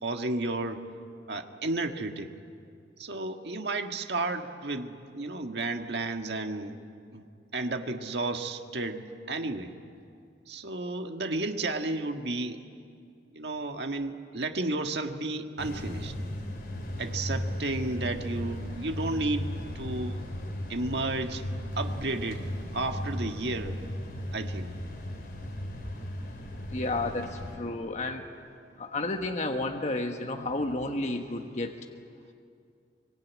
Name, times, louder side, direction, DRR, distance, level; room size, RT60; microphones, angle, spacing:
voice 1, 0.0-0.8 1.3-2.3 3.0-6.8 7.1-7.2 7.5-9.7 10.5-12.6 13.3-16.1 17.0-19.5 19.7-20.2 20.7-21.4 21.7-22.4 22.7-23.8 24.3-24.7, right 2 dB, 65° right, 5 dB, 1.7 m, -32 dB
sound 1, 15.6-27.6, equal, 55° left, 4.3 m, -36 dB
voice 2, 26.7-28.2 28.8-31.8, left 2 dB, 40° left, 4 dB, 1.3 m, -31 dB
24.0 x 24.0 x 9.4 m, 2.4 s
head